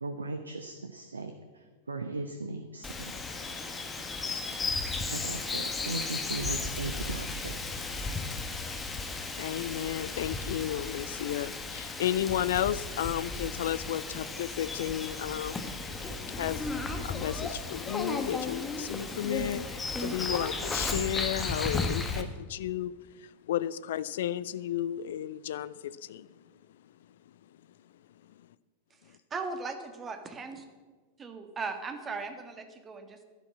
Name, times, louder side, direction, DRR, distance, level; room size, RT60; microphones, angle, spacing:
voice 1, 0.0-3.1 5.1-7.5, right 3 dB, 75° right, 0.9 m, -38 dB
Bird vocalization bird call bird song, 2.8-22.2, left 3 dB, 15° left, 1.6 m, -35 dB
voice 2, 9.4-15.7 16.3-16.7 17.0-26.3, left 11 dB, 60° left, 0.5 m, -33 dB
voice 3, 29.1-30.6 31.2-33.2, right 4 dB, 20° right, 1.7 m, -38 dB
11.5 x 11.0 x 7.3 m
figure-of-eight pair, 90°, 0 cm